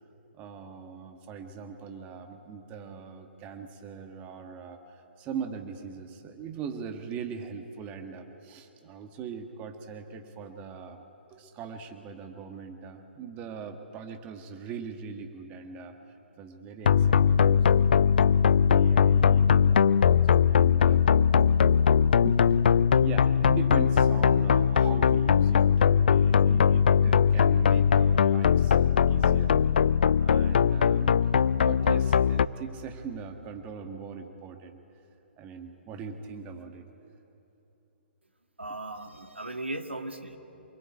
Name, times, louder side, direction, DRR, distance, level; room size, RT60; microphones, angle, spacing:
voice 1, 0.3-11.0 11.3-18.1 18.6-21.0 22.2-31.2 31.6-34.8 35.4-36.9, right 6 dB, 25° right, 5 dB, 1.9 m, -41 dB
sound 1, 16.9-32.5, left 7 dB, 55° left, 0.5 m, -21 dB
voice 2, 38.6-40.4, right 2 dB, 85° right, 6 dB, 1.9 m, -37 dB
28.0 x 21.5 x 8.7 m, 2.9 s
figure-of-eight pair, 125°, 6 cm